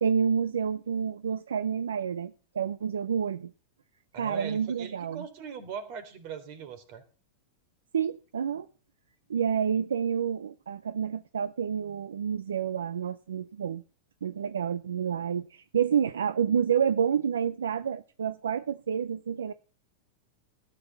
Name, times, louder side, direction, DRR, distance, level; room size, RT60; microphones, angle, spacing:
voice 1, 0.0-3.5 4.2-5.3 7.9-8.7 9.3-13.8 14.2-19.5, right 7 dB, 90° right, 0.6 m, -29 dB
voice 2, 4.1-7.0, right 6 dB, 55° right, 3.6 m, -40 dB
13.5 x 9.2 x 7.0 m
hypercardioid pair, 110°, 0 cm